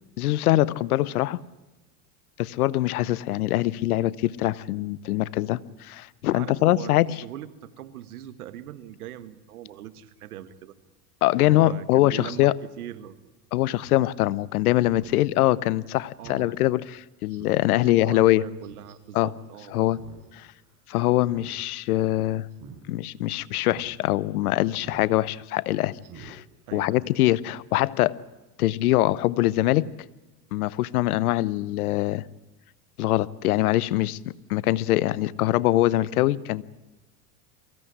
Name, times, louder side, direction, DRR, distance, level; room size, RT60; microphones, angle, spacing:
voice 1, 0.2-1.4 2.4-7.1 11.2-12.5 13.5-18.4 19.1-19.3 19.7-20.0 20.4-20.5 20.9-22.5 22.9-26.4 26.7-28.2 28.6-29.9 30.5-32.2 33.0-34.2 34.5-36.6, left 16 dB, 85° left, 21 dB, 0.9 m, -23 dB
voice 2, 6.3-10.7 11.3-13.1 16.2-16.6 17.7-19.9 26.7-27.0, right 11 dB, 90° right, 13 dB, 1.7 m, -41 dB
Speech synthesizer, 13.8-14.0 14.4-14.5 14.8-15.2 15.6-15.7 16.2-16.4 16.8-16.9 17.3-17.7 18.6-18.9 19.9-20.3 20.5-20.6 21.2-21.6 21.8-22.1 22.5-22.8 23.2-23.3 23.7-23.9 24.8-25.1 25.4-25.6 26.0-26.3 26.7-26.8, right 7 dB, 45° right, 5.9 m, -47 dB
23.5 x 16.0 x 10.0 m, 1.1 s
hypercardioid pair, 90°, 43 cm